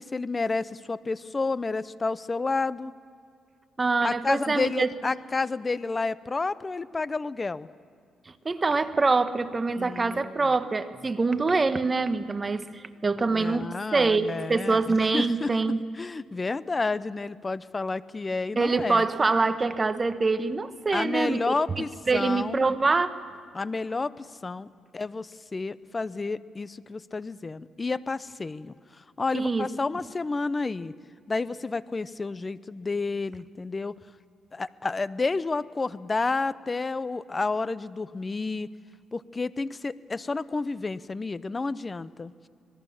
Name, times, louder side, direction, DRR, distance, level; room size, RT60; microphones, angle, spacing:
voice 1, 0.0-2.9 4.0-7.7 9.8-10.5 13.3-15.5 15.9-19.0 20.9-22.6 23.5-24.7 24.9-28.7 29.2-30.9 31.3-33.9 34.5-38.7 39.1-42.5, left 3 dB, 25° left, 17 dB, 0.7 m, -30 dB
voice 2, 3.8-4.9 8.4-15.8 18.6-23.2 29.3-29.7, right 3 dB, 30° right, 11 dB, 1.1 m, -25 dB
26.0 x 20.0 x 7.3 m, 2.3 s
cardioid pair, 90°, 0 cm